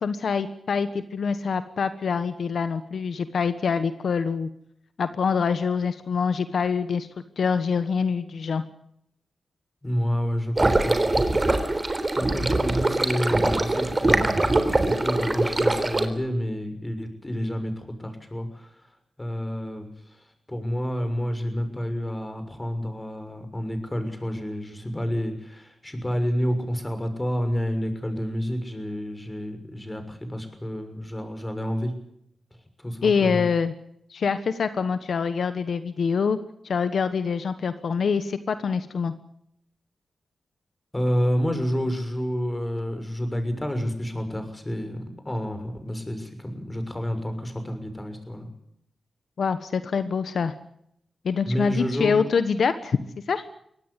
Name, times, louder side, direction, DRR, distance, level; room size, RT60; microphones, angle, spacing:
voice 1, 0.0-4.5 5.0-7.1 7.4-8.6 33.0-33.7 34.1-36.4 36.6-39.1 49.4-50.5 51.2-53.0 53.3-53.4, left 5 dB, 75° left, 11 dB, 1.2 m, -25 dB
voice 2, 9.8-18.9 19.2-31.9 32.8-33.4 40.9-48.5 51.5-52.2, equal, 15° left, 8 dB, 6.5 m, -29 dB
sound 1, 10.6-16.1, right 2 dB, 30° right, 3.5 m, -23 dB
23.5 x 18.0 x 8.3 m, 0.74 s
cardioid pair, 70°, 0 cm